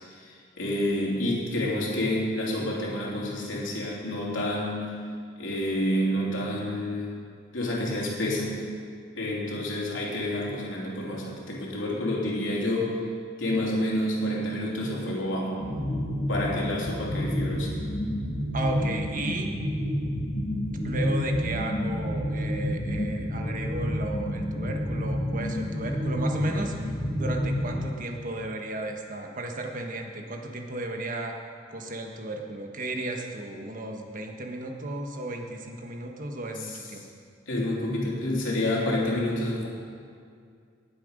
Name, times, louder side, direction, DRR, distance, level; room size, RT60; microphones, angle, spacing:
voice 1, 0.2-4.9 5.4-7.2 7.5-8.6 9.2-12.9 13.4-15.6 16.3-17.7 36.6-36.8 37.5-39.7, left 1 dB, 90° left, -3 dB, 3.1 m, -29 dB
sound 1, 15.6-27.9, equal, 35° left, 1.8 m, -29 dB
voice 2, 18.5-19.5 20.8-26.7 27.2-31.4 31.7-37.0, right 2 dB, 45° right, 3 dB, 1.4 m, -34 dB
19.5 x 7.8 x 5.2 m, 2.3 s
head